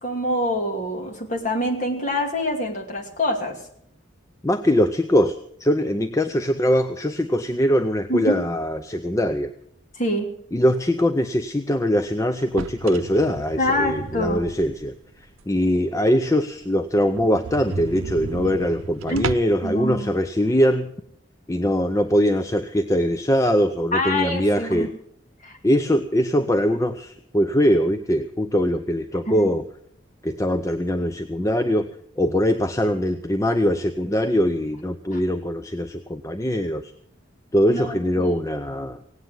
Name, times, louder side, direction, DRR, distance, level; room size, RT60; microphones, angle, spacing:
voice 1, 0.0-3.6 8.1-8.4 9.9-10.3 13.6-14.4 19.1-19.3 19.6-20.2 23.9-24.9 25.4-25.6 29.3-29.5 37.7-38.4, left 1 dB, 35° left, 1 dB, 2.6 m, -25 dB
voice 2, 4.4-9.5 10.5-20.9 21.5-24.9 25.6-29.6 30.2-31.9 32.2-36.9 37.5-39.0, equal, 15° left, 8 dB, 0.5 m, -22 dB
sound 1, 12.4-15.0 15.4-15.5 15.9-16.0 16.3-16.4 16.6-16.7 17.1-19.7, right 4 dB, 90° right, 0.6 m, -33 dB
17.5 x 9.0 x 7.6 m, 0.69 s
head